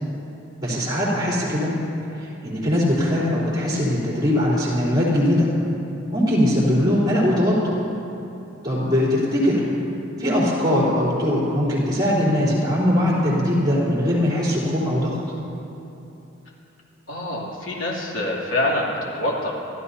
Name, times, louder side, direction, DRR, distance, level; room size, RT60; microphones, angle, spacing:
voice 1, 0.6-1.7 2.2-5.5 6.1-7.7 8.6-9.6 10.2-15.2, left 1 dB, 20° right, -7 dB, 3.8 m, -21 dB
voice 2, 17.1-19.5, left 1 dB, 85° left, -4 dB, 2.9 m, -25 dB
28.0 x 13.0 x 2.8 m, 2.9 s
head